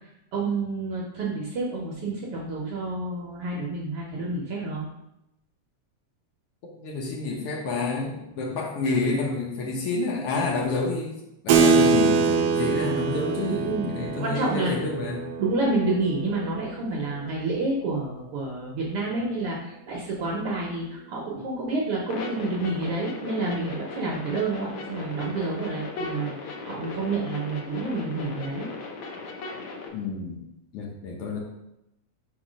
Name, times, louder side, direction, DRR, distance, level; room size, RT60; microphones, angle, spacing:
voice 1, 0.3-4.8 13.5-13.9 14.2-14.7 15.4-28.7, right 3 dB, 65° right, -3 dB, 1.5 m, -29 dB
voice 2, 6.7-11.2 11.4-15.3 29.9-30.4 30.7-31.4, left 3 dB, 65° left, -1 dB, 1.6 m, -29 dB
Keyboard (musical), 11.5-17.5, right 4 dB, 85° right, 1.3 m, -24 dB
sound 1, 22.1-29.9, left 3 dB, 80° left, 1.1 m, -37 dB
4.7 x 4.4 x 4.9 m, 0.86 s
omnidirectional pair, 3.4 m